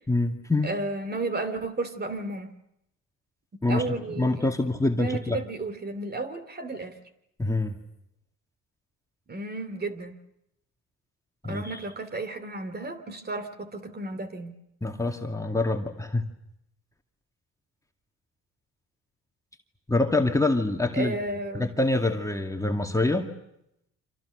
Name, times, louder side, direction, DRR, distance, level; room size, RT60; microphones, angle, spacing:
voice 1, 0.1-0.7 3.6-5.4 7.4-7.7 11.4-11.8 14.8-16.3 19.9-21.2 21.5-23.3, left 2 dB, 10° left, 3 dB, 2.1 m, -25 dB
voice 2, 0.6-2.6 3.7-4.4 4.9-7.0 9.3-10.2 11.5-14.6 20.9-21.7, right 2 dB, 30° right, 9 dB, 2.6 m, -33 dB
29.5 x 26.0 x 6.6 m, 0.79 s
cardioid pair, 90°, 30 cm